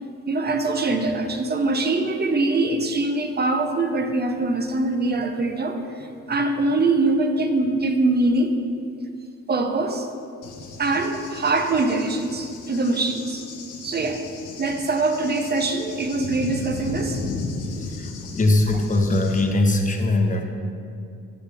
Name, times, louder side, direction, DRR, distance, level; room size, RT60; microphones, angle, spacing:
voice 1, 0.3-8.6 9.5-10.1 10.8-13.5 13.8-14.3 14.6-17.2, right 2 dB, 35° right, 6 dB, 0.8 m, -23 dB
Cricket / Thunder, 10.4-19.4, left 3 dB, 85° left, 1.2 m, -35 dB
voice 2, 17.8-20.4, left 2 dB, 25° left, 3 dB, 1.1 m, -21 dB
14.0 x 5.9 x 3.5 m, 2.4 s
cardioid pair, 90°, 30 cm